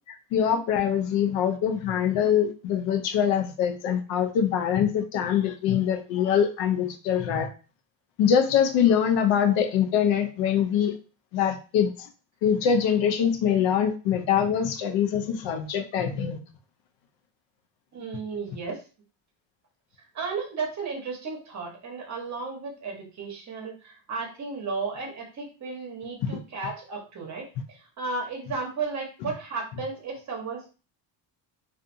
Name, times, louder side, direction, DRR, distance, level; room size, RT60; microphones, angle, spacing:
voice 1, 0.1-7.5 8.2-10.9 11.3-12.1 12.4-16.4 26.2-26.3, left 8 dB, 85° left, 6 dB, 0.6 m, -24 dB
voice 2, 17.9-18.8 20.1-30.7, right 4 dB, 40° right, 1 dB, 0.9 m, -34 dB
2.5 x 2.4 x 2.6 m, 0.34 s
cardioid pair, 120°, 43 cm